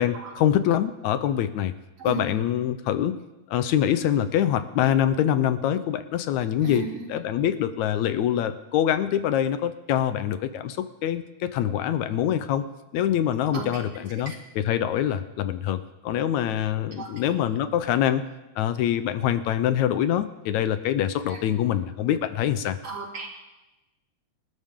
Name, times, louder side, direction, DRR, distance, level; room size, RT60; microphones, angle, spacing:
voice 1, 0.0-1.7 2.0-3.2 3.5-6.8 7.1-12.6 12.9-18.2 18.6-22.8, left 10 dB, 80° left, 12 dB, 2.1 m, -25 dB
voice 2, 6.6-7.0 13.5-13.6 14.3-14.4 17.0-17.1 21.3-21.4 22.8-23.4, right 5 dB, 55° right, -2 dB, 4.0 m, -34 dB
27.5 x 12.0 x 3.7 m, 1.0 s
omnidirectional pair, 3.3 m